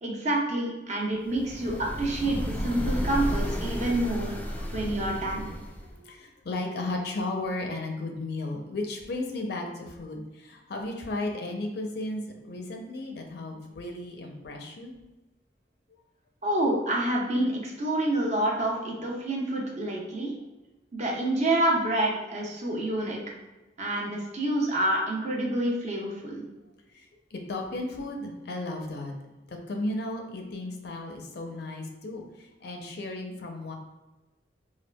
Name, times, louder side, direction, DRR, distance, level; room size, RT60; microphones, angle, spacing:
voice 1, 0.0-4.3 4.7-5.5 16.4-20.3 20.9-23.2 23.8-26.4, right 1 dB, 40° right, -2 dB, 0.7 m, -28 dB
sound 1, 1.3-6.0, equal, 10° left, 0.3 m, -33 dB
voice 2, 4.5-14.9 20.4-20.6 26.9-29.2 29.5-33.7, left 2 dB, 65° left, 3 dB, 0.5 m, -35 dB
4.3 x 2.4 x 2.2 m, 1.1 s
head